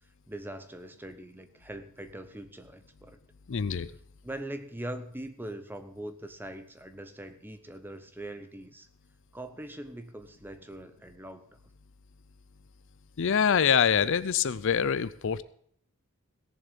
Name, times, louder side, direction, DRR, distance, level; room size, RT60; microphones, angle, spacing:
voice 1, 0.3-3.2 4.2-8.9 9.3-11.4, right 1 dB, 10° right, 9 dB, 0.8 m, -42 dB
voice 2, 3.5-3.9 13.2-15.4, left 7 dB, 55° left, 16 dB, 0.5 m, -25 dB
17.0 x 7.2 x 5.2 m, 0.64 s
head